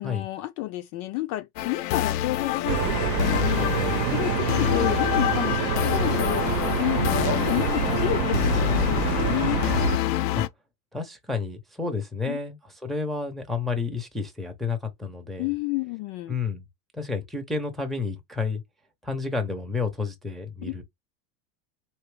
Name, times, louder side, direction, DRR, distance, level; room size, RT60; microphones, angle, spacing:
voice 1, 0.0-9.6 12.3-12.4 15.4-16.3 20.6-20.7, left 18 dB, 40° left, 0.5 m, -31 dB
sound 1, 1.6-10.5, left 15 dB, 70° left, 0.7 m, -26 dB
sound 2, 2.6-10.0, right 9 dB, 80° right, 0.8 m, -27 dB
voice 2, 10.9-15.5 16.3-16.6 16.9-18.6 19.0-20.8, left 4 dB, ahead, 0.6 m, -30 dB
4.5 x 2.9 x 3.2 m
supercardioid pair, 145°, 50 cm